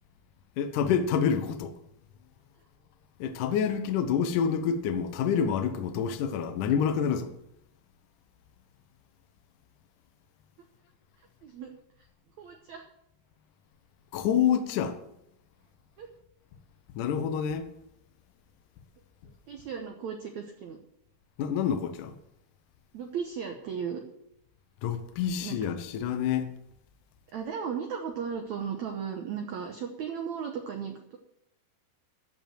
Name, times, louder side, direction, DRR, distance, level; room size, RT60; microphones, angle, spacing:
voice 1, 0.6-1.8 3.2-7.3 14.1-15.0 17.0-17.7 21.4-22.2 24.8-26.5, left 7 dB, 70° left, 2.0 m, -27 dB
voice 2, 12.4-12.8 16.0-16.1 19.2-20.8 22.9-24.0 25.4-25.6 27.3-31.2, right 7 dB, 75° right, 1.6 m, -36 dB
14.0 x 5.4 x 7.6 m
omnidirectional pair, 4.6 m